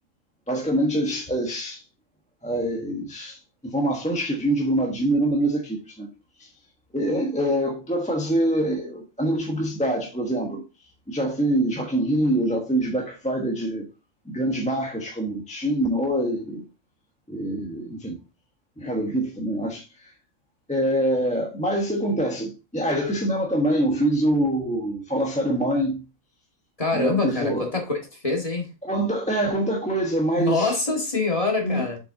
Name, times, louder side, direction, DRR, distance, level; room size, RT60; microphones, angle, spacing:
voice 1, 0.5-1.8 2.4-6.1 6.4-6.5 6.9-10.6 11.1-13.9 14.2-16.6 17.3-18.2 18.8-20.1 20.7-26.0 26.9-27.7 28.8-30.8 31.6-31.9, right 1 dB, 5° left, 1.0 m, -25 dB
voice 2, 26.8-28.0 28.2-28.7 30.4-32.0, left 3 dB, 25° left, 1.8 m, -24 dB
7.3 x 5.5 x 2.7 m
omnidirectional pair, 1.5 m